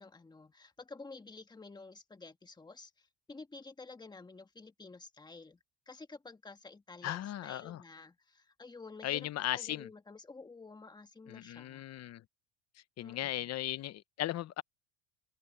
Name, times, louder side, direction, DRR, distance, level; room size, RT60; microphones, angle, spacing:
voice 1, 0.0-2.9 3.3-5.6 5.9-11.8 13.0-13.5, left 3 dB, 10° left, 1.7 m, -51 dB
voice 2, 7.0-7.8 9.0-9.9 11.3-12.2 13.0-14.6, left 13 dB, 45° left, 1.0 m, -37 dB
supercardioid pair, 115°, 36 cm